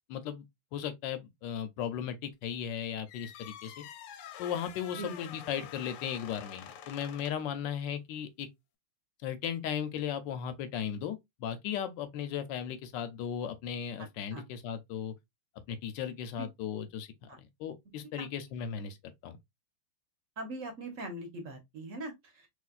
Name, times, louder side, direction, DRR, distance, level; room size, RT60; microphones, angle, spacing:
voice 1, 0.1-0.4 0.7-3.8 4.4-8.5 9.2-15.1 15.7-17.1 17.4-19.0 19.2-19.4, left 8 dB, 70° left, 1.1 m, -36 dB
sound 1, 3.1-7.5, left 9 dB, 90° left, 1.5 m, -47 dB
voice 2, 20.4-22.5, right 2 dB, 50° right, 1.0 m, -41 dB
3.2 x 3.1 x 2.4 m
omnidirectional pair, 2.3 m